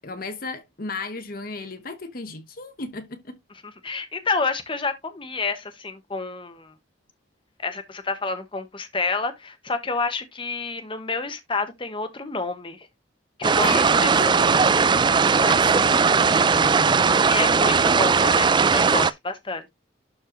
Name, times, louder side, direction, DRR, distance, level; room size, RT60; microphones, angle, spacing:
voice 1, 0.0-3.4 13.6-14.6 15.4-17.2, left 3 dB, 50° left, 1.1 m, -35 dB
voice 2, 3.8-6.7 7.6-12.9 13.4-14.4 17.3-19.7, left 3 dB, 25° left, 1.2 m, -29 dB
sound 1, 13.4-19.1, right 5 dB, 25° right, 0.4 m, -18 dB
12.0 x 4.3 x 3.0 m
head